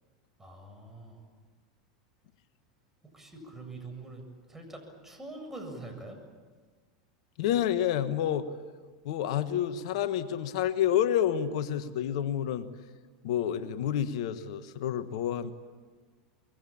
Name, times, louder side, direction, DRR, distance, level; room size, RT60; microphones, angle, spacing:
voice 1, 0.4-1.2 3.1-6.2, right 2 dB, 10° right, 3 dB, 7.6 m, -44 dB
voice 2, 7.4-8.5 9.0-12.7 13.2-15.5, left 10 dB, 65° left, 11 dB, 1.4 m, -29 dB
24.5 x 22.5 x 8.8 m, 1.4 s
hypercardioid pair, 95°, 3 cm